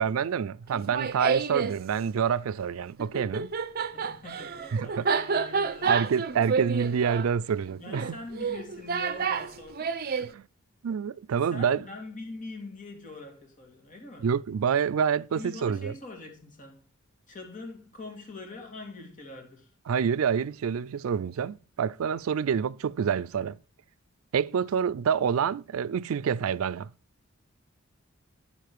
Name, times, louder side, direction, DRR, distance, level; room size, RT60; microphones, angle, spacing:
voice 1, 0.0-3.5 4.7-5.0 5.8-8.2 10.2-10.4 10.8-11.8 14.2-15.9 19.9-23.6 24.3-26.9, right 7 dB, 90° right, 0.4 m, -27 dB
Laughter, 0.7-1.8 3.0-10.3, right 5 dB, 45° right, 0.6 m, -29 dB
voice 2, 3.9-6.3 7.7-10.0 11.4-14.3 15.3-16.8 17.3-19.7, left 2 dB, 40° left, 2.6 m, -44 dB
11.0 x 6.8 x 4.6 m
head